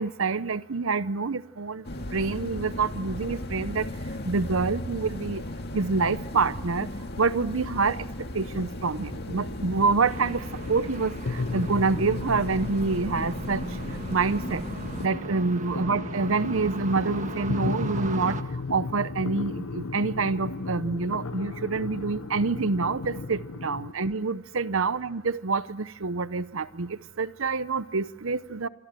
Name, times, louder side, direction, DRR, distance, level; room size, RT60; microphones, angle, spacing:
voice 1, 0.0-1.8 2.1-3.9 4.2-5.4 5.7-6.9 7.2-8.0 8.3-13.6 14.1-14.6 15.0-18.4 18.7-28.7, right 4 dB, 65° right, 0.8 m, -27 dB
sound 1, 1.8-15.1, left 1 dB, 50° left, 2.0 m, -36 dB
sound 2, 7.1-23.9, left 3 dB, 80° left, 0.8 m, -36 dB
sound 3, 10.0-18.4, right 2 dB, 35° right, 1.4 m, -37 dB
26.5 x 26.0 x 7.6 m
head